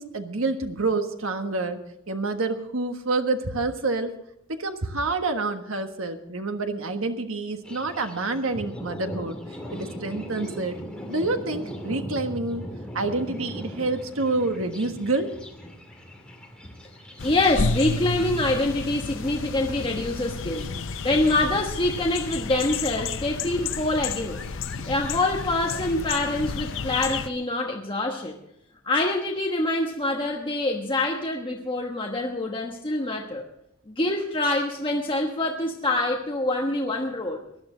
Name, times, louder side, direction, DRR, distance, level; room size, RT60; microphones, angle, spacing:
voice 1, 0.0-1.8 2.1-4.1 4.5-9.4 9.7-10.8 11.1-12.6 12.9-15.3 24.8-24.9, right 3 dB, 70° right, 6 dB, 1.4 m, -28 dB
Thunder, 7.6-27.2, equal, 5° left, 2.2 m, -41 dB
sound 1, 17.2-27.3, left 4 dB, 60° left, 0.7 m, -31 dB
voice 2, 17.2-20.7 21.0-24.4 24.9-28.4 28.8-33.4 33.9-37.4, left 2 dB, 25° left, 0 dB, 1.2 m, -25 dB
20.0 x 11.5 x 3.9 m, 0.78 s
head